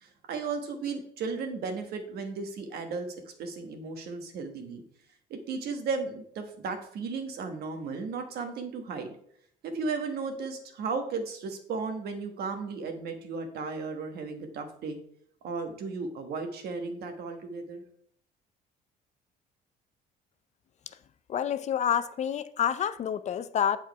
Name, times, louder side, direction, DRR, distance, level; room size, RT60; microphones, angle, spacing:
voice 1, 0.0-3.1 3.4-4.8 5.3-9.1 9.6-15.0 15.4-17.8, right 4 dB, 70° right, 1.3 m, -35 dB
voice 2, 21.3-23.8, left 9 dB, 45° left, 0.5 m, -28 dB
7.9 x 4.5 x 4.7 m
cardioid pair, 110°, 17 cm